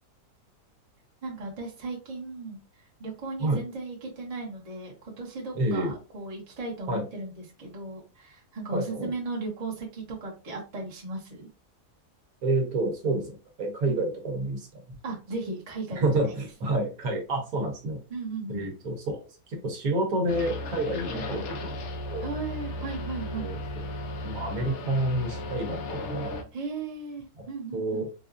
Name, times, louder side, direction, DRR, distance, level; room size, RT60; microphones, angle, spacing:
voice 1, 1.2-2.6 3.0-11.5 13.8-14.0 15.0-16.3 18.1-18.6 21.1-21.4 22.2-23.5 26.5-28.1, right 3 dB, 30° right, -2 dB, 1.0 m, -36 dB
voice 2, 5.5-5.9 6.9-7.0 8.7-9.1 12.4-14.7 15.9-18.0 18.5-21.7 22.0-22.3 23.4-23.9 24.2-26.3 27.4-27.5 27.7-28.1, right 2 dB, 70° right, 2 dB, 1.3 m, -29 dB
sound 1, 20.3-26.4, left 1 dB, 60° left, 0.8 m, -35 dB
3.9 x 2.3 x 2.5 m, 0.31 s
omnidirectional pair, 1.6 m